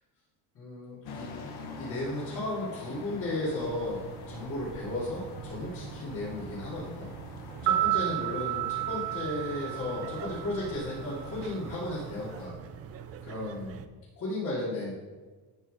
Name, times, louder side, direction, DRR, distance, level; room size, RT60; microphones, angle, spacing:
voice 1, 0.5-1.3 1.8-7.1 7.6-12.6 13.2-13.8 14.2-14.9, left 1 dB, 45° left, -10 dB, 3.2 m, -34 dB
sound 1, 1.0-12.5, left 4 dB, 65° left, 1.3 m, -46 dB
sound 2, 3.6-13.9, right 7 dB, 35° right, 0.4 m, -45 dB
sound 3, 7.5-11.7 11.9-12.1, right 14 dB, 80° right, 1.2 m, -32 dB
12.5 x 4.6 x 5.2 m, 1.3 s
cardioid pair, 180°, 41 cm